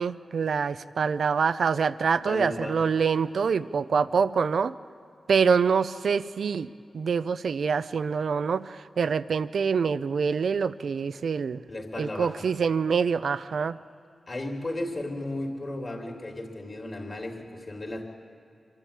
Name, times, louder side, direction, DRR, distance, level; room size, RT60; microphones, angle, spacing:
voice 1, 0.0-4.7 5.3-6.7 6.9-11.6 12.0-13.8, right 6 dB, 80° right, 15 dB, 0.5 m, -25 dB
voice 2, 2.2-2.8 11.7-12.4 14.3-18.0, left 1 dB, 40° left, 1 dB, 3.0 m, -34 dB
25.5 x 12.5 x 8.7 m, 2.6 s
wide cardioid pair, 100°, 0 cm